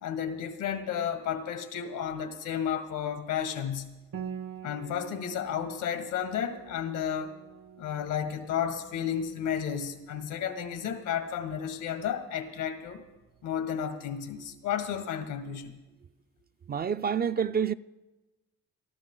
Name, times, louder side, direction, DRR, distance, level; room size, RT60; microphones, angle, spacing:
voice 1, 0.0-4.0 4.6-7.3 7.8-13.0 13.4-15.8, left 8 dB, 90° left, 1.7 m, -32 dB
Piano, 4.1-13.5, right 8 dB, 60° right, 1.1 m, -47 dB
voice 2, 16.7-17.7, right 7 dB, 30° right, 0.4 m, -28 dB
23.0 x 13.0 x 3.9 m
cardioid pair, 90°, 30 cm